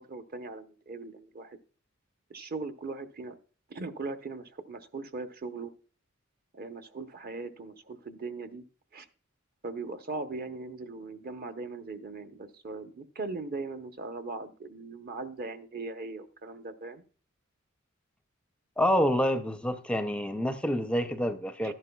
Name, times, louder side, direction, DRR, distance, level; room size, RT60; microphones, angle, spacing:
voice 1, 0.0-1.6 2.3-3.4 3.7-5.7 6.5-8.6 8.9-9.1 9.6-17.0 21.6-21.7, right 3 dB, 45° right, 0.8 m, -39 dB
voice 2, 18.8-21.7, equal, 5° left, 0.5 m, -27 dB
12.0 x 11.0 x 2.2 m
head